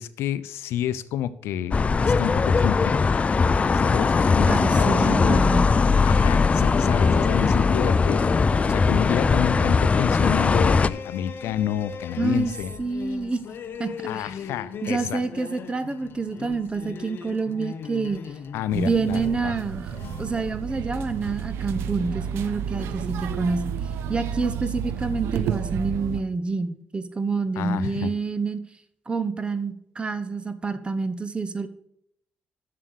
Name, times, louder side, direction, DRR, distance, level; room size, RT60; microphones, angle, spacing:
voice 1, 0.0-3.3 3.7-5.4 6.0-8.2 8.6-12.7 14.1-15.2 18.5-19.5 27.6-28.1, left 11 dB, 90° left, 15 dB, 0.5 m, -29 dB
sound 1, 1.7-10.9, left 4 dB, 30° left, 0.4 m, -20 dB
sound 2, 3.3-21.6, left 7 dB, 60° left, 0.8 m, -39 dB
voice 2, 4.5-5.7 12.2-12.5 12.8-13.4 13.8-14.3 14.8-18.2 18.7-19.9 20.2-23.7 24.1-28.6 29.1-31.7, right 4 dB, 25° right, 12 dB, 0.9 m, -27 dB
sound 3, 18.7-26.2, right 8 dB, 90° right, 0.6 m, -31 dB
7.4 x 6.7 x 6.3 m, 0.74 s
cardioid pair, 90°, 4 cm